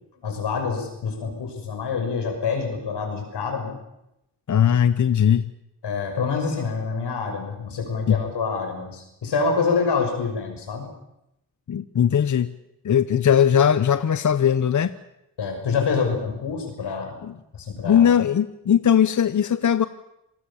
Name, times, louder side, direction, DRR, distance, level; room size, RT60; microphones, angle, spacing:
voice 1, 0.2-3.8 5.8-10.9 15.4-17.2 17.5-18.1, left 5 dB, 80° left, 4 dB, 6.4 m, -26 dB
voice 2, 4.5-5.5 8.1-8.2 11.7-12.5 12.8-14.9 17.2-17.3 17.8-19.9, left 8 dB, 45° left, 13 dB, 0.8 m, -19 dB
27.0 x 19.5 x 7.2 m, 0.85 s
cardioid pair, 85°, 40 cm